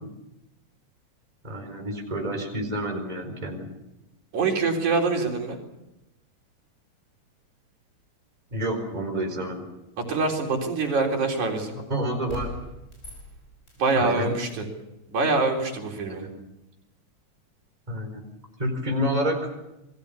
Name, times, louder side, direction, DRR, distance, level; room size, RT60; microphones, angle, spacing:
voice 1, 1.4-3.7 8.5-9.7 11.9-12.5 13.9-14.3 16.1-16.3 17.9-18.2 18.6-19.5, right 1 dB, 15° right, 3 dB, 4.5 m, -29 dB
voice 2, 4.3-5.6 10.0-11.8 13.8-14.7 15.1-16.3, right 3 dB, 80° right, 1 dB, 5.3 m, -25 dB
sound 1, 10.8-11.0 12.3-13.9 14.5-14.7, left 3 dB, 20° left, 5.7 m, -41 dB
27.5 x 21.0 x 7.1 m, 0.91 s
omnidirectional pair, 3.3 m